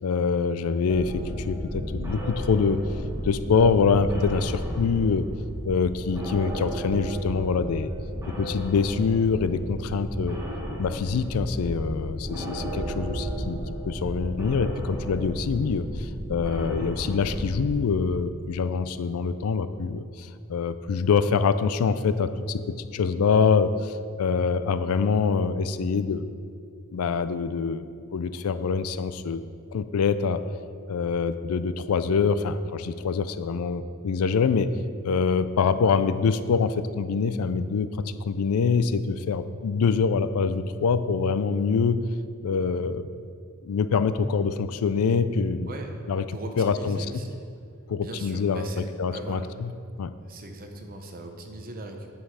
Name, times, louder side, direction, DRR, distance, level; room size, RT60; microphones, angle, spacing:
voice 1, 0.0-2.8 3.2-5.3 5.6-7.9 8.3-10.4 10.8-13.6 13.9-26.3 26.9-27.8 28.1-29.4 29.7-30.4 30.9-34.7 35.0-37.9 38.2-42.0 42.4-43.0 43.6-45.7 46.1-46.2 46.6-47.0 47.9-49.7 50.0-50.1, left 5 dB, 85° left, 13 dB, 0.4 m, -25 dB
sound 1, 0.9-17.7, equal, 15° right, 1.4 m, -33 dB
voice 2, 46.3-47.4 48.0-49.5 50.3-52.1, right 2 dB, 40° right, 4 dB, 0.8 m, -39 dB
8.9 x 5.7 x 4.8 m, 2.3 s
head